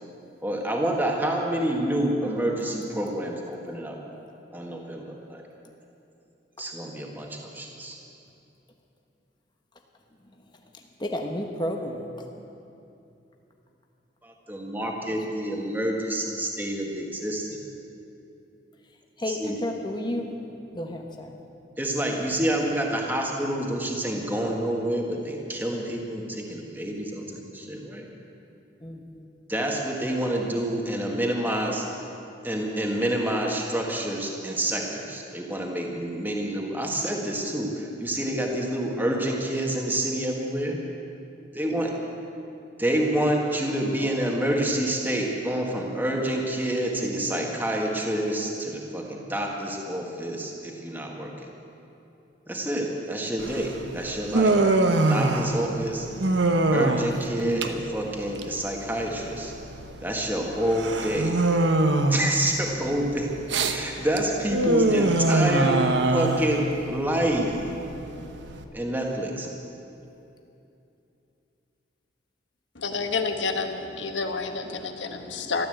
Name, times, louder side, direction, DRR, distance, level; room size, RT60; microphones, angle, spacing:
voice 1, 0.4-4.0 4.5-5.4 6.6-8.0 14.2-17.6 19.2-19.6 21.8-28.1 29.5-31.8 32.4-40.8 41.5-41.9 42.8-51.5 52.5-54.6 54.9-56.1 56.7-59.5 60.0-61.4 62.1-65.8 66.1-67.5 68.7-69.5, right 1 dB, 10° right, -1 dB, 1.6 m, -28 dB
voice 2, 10.7-12.1 19.2-20.3 20.7-21.4 28.8-29.3 67.8-68.7, left 1 dB, 25° left, 2 dB, 1.1 m, -33 dB
Human voice, 53.4-68.6, right 2 dB, 75° right, 1.0 m, -24 dB
voice 3, 72.7-75.7, left 4 dB, 80° left, 6 dB, 1.3 m, -29 dB
14.5 x 12.0 x 7.9 m, 2.8 s
head